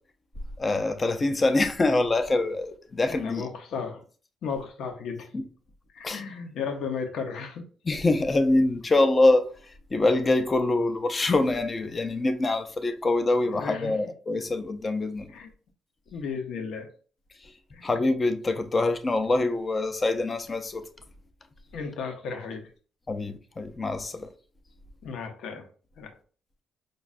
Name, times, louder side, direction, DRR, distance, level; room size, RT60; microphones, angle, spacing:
voice 1, 0.6-3.5 5.3-5.4 6.0-6.2 7.9-9.4 9.9-15.3 17.8-20.8 23.1-24.3, left 2 dB, 25° left, 0.4 m, -24 dB
voice 2, 3.1-4.0 4.4-5.3 5.9-7.7 13.4-14.1 15.3-15.5 16.1-16.9 17.7-18.0 21.7-22.7 25.0-25.7 26.0-26.1, left 5 dB, 70° left, 0.6 m, -34 dB
5.1 x 2.2 x 2.4 m
cardioid pair, 145°, 0 cm